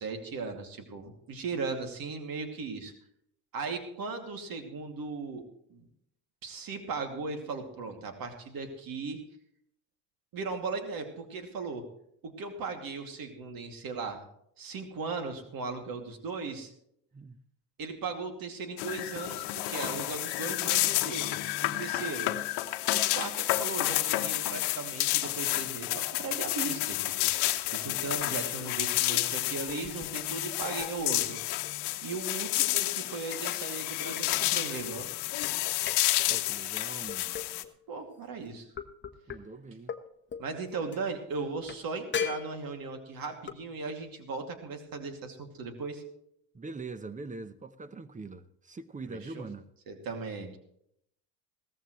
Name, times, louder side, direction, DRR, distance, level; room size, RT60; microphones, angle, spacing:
voice 1, 0.0-2.9 3.5-5.4 5.7-5.9 6.4-9.2 10.3-11.8 12.2-14.2 14.6-16.7 17.8-22.3 22.9-27.3 27.7-31.4 32.0-35.1 37.9-38.7 40.4-46.0 49.0-49.4 49.9-50.6, right 4 dB, 50° right, 2.6 m, -37 dB
sound 1, 18.8-37.6, left 16 dB, 60° left, 1.1 m, -30 dB
sound 2, 25.8-25.9 26.3-29.4 29.7-30.2 30.6-32.4 33.3-36.5 37.1-37.8 38.8-39.4 39.9-40.0 40.3-40.5 40.9-41.0 41.7-41.8 42.1-43.0 43.5-43.6, left 7 dB, 25° left, 1.1 m, -40 dB
voice 2, 36.3-37.4 39.3-40.0 46.5-49.7, right 3 dB, 15° right, 0.9 m, -43 dB
17.0 x 14.0 x 3.2 m
supercardioid pair, 95°, 45 cm